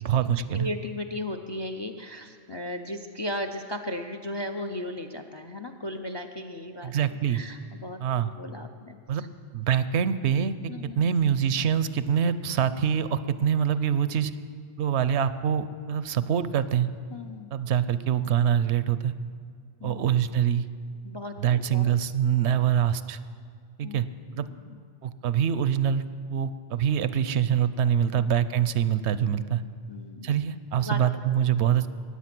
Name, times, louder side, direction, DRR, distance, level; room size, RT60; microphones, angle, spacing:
voice 1, 0.0-0.7 6.8-7.4 8.0-8.3 9.1-9.2 9.5-14.3 14.8-16.9 17.5-19.1 19.8-20.6 21.4-23.2 23.8-24.0 24.4-24.5 25.0-26.0 26.3-29.6 30.2-31.9, right 8 dB, 75° right, 14 dB, 0.8 m, -25 dB
voice 2, 0.5-6.9 7.3-9.3 10.7-11.0 17.1-17.5 19.8-20.1 21.0-21.9 23.8-24.8 28.1-28.3 29.9-30.3 30.7-31.2, left 1 dB, 40° left, 7 dB, 0.3 m, -36 dB
15.5 x 10.0 x 5.9 m, 2.1 s
omnidirectional pair, 1.2 m